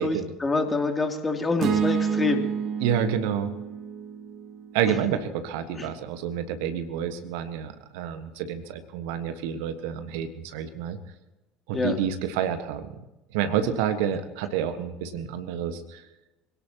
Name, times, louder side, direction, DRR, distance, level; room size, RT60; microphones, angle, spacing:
voice 1, 0.0-2.5 4.9-5.0 5.8-5.9 11.7-12.0, left 3 dB, 20° left, 4 dB, 3.0 m, -26 dB
sound 1, 1.6-5.9, right 7 dB, 45° right, 1.5 m, -30 dB
voice 2, 2.8-3.5 4.7-11.0 11.7-13.0 13.3-16.0, right 8 dB, 65° right, 9 dB, 1.5 m, -29 dB
26.0 x 17.5 x 3.0 m, 1.0 s
figure-of-eight pair, 65°, 0 cm